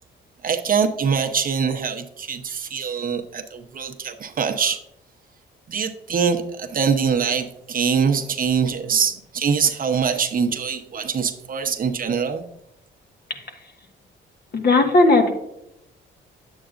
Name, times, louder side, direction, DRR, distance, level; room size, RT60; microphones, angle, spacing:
voice 1, 0.4-4.8 5.7-12.4, right 6 dB, 45° right, 5 dB, 0.9 m, -23 dB
voice 2, 14.5-15.3, left 2 dB, 50° left, 4 dB, 1.6 m, -16 dB
9.8 x 8.2 x 2.6 m, 0.80 s
cardioid pair, 90°, 20 cm